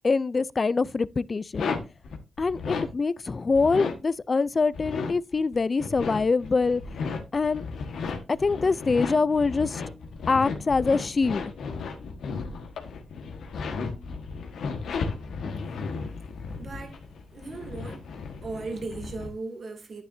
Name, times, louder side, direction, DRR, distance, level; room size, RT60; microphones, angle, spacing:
voice 1, 0.0-1.7 2.4-6.8 7.3-7.6 8.3-9.8 10.3-11.5, left 4 dB, 45° left, 0.5 m, -24 dB
sound 1, 1.5-2.9 3.3-3.9 4.6-19.3, left 4 dB, 80° left, 1.5 m, -34 dB
voice 2, 16.6-17.0 17.3-18.1 18.4-20.0, right 3 dB, 55° right, 2.6 m, -37 dB
9.9 x 9.5 x 2.7 m
supercardioid pair, 50°, 0 cm